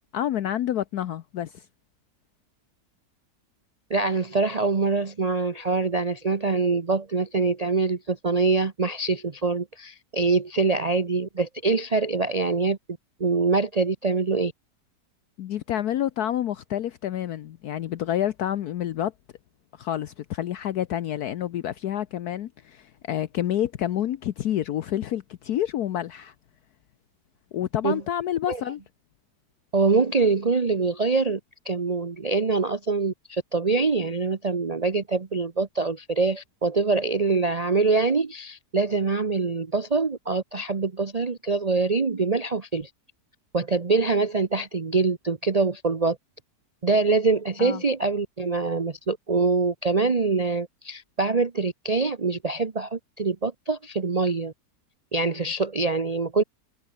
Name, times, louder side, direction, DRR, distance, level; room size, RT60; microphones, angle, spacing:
voice 1, 0.1-1.6 15.4-19.1 19.8-26.3 27.5-28.8 47.6-47.8, left 11 dB, 70° left, 1.2 m, -28 dB
voice 2, 3.9-12.8 13.2-14.5 27.8-28.0 28.5-28.6 29.7-31.4 31.6-42.9 43.5-46.2 46.8-54.5 55.1-56.4, right 4 dB, 30° right, 0.8 m, -24 dB
omnidirectional pair, 1.8 m